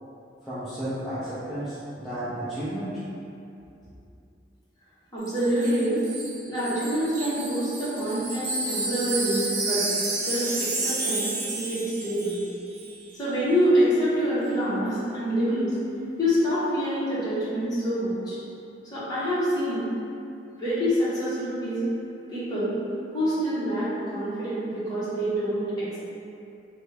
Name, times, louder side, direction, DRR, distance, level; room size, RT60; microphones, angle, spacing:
voice 1, 0.4-3.0, right 1 dB, ahead, -14 dB, 0.4 m, -32 dB
voice 2, 5.1-6.0 6.5-9.8 10.2-12.4 13.1-15.7 16.2-18.4 18.8-19.9 20.6-21.8 22.3-22.7 23.1-26.0, equal, 20° left, -12 dB, 1.0 m, -26 dB
Wind chime, 5.3-12.5 12.7-12.9, right 3 dB, 85° right, 0.7 m, -31 dB
3.1 x 2.3 x 3.3 m, 2.7 s
head